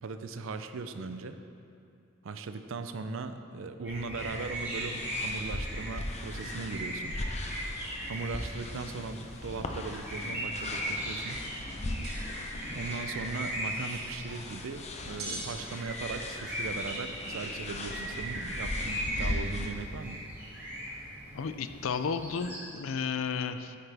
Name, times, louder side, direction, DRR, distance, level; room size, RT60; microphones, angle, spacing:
voice 1, 0.0-1.4 2.2-7.1 8.1-11.4 12.7-20.2, right 4 dB, 65° right, 9 dB, 0.5 m, -38 dB
sound 1, 3.8-22.6, right 1 dB, 10° right, 2.4 m, -39 dB
sound 2, 4.2-19.7, left 1 dB, 35° left, 0.7 m, -39 dB
sound 3, 12.0-12.2 12.5-12.6 13.4-14.1 15.2-15.5 16.4-16.7, right 2 dB, 50° right, 2.3 m, -42 dB
voice 2, 21.3-23.8, left 6 dB, 70° left, 10 dB, 0.4 m, -33 dB
9.9 x 8.4 x 3.4 m, 2.5 s
head